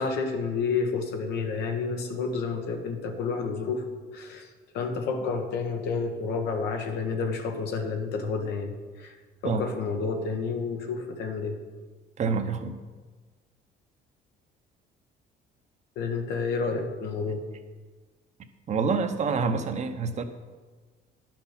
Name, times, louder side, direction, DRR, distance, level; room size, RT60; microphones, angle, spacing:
voice 1, 0.0-3.8 4.1-4.5 4.7-9.1 9.4-11.6 16.0-17.4, left 4 dB, 85° left, 4 dB, 1.3 m, -30 dB
voice 2, 12.2-12.8 18.7-20.2, right 5 dB, 45° right, 8 dB, 0.8 m, -27 dB
10.5 x 6.0 x 5.8 m, 1.4 s
cardioid pair, 110°, 17 cm